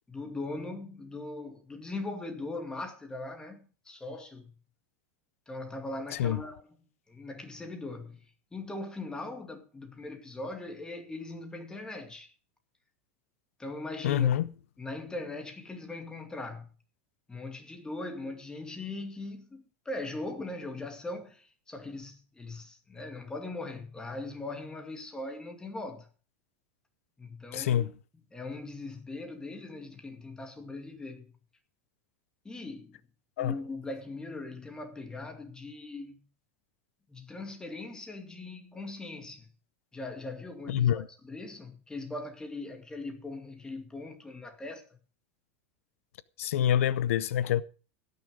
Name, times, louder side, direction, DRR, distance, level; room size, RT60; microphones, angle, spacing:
voice 1, 0.1-4.6 5.5-8.2 8.5-12.3 13.6-14.3 14.8-16.7 17.3-26.1 27.2-27.9 28.3-31.4 32.4-33.0 33.4-36.2 37.1-39.5 39.9-44.9, left 2 dB, 10° left, 2.2 m, -40 dB
voice 2, 14.0-14.5 27.5-27.9 33.4-33.5 40.7-41.1 46.4-47.6, left 10 dB, 85° left, 0.6 m, -26 dB
17.5 x 6.6 x 5.1 m
supercardioid pair, 135°, 7 cm